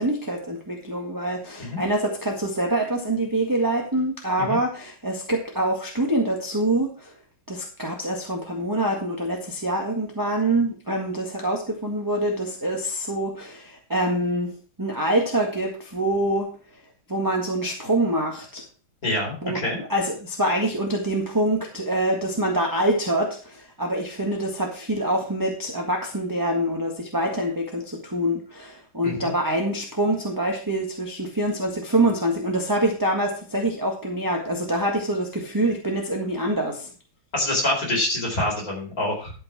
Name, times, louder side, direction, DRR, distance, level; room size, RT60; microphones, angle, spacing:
voice 1, 0.0-7.1 7.5-14.5 14.8-16.5 17.1-18.6 19.4-36.9, right 1 dB, 10° right, 0 dB, 1.6 m, -25 dB
voice 2, 19.0-19.8 29.0-29.3 37.3-39.3, left 1 dB, 45° left, -2 dB, 4.7 m, -26 dB
12.0 x 5.6 x 5.9 m, 0.38 s
omnidirectional pair, 2.2 m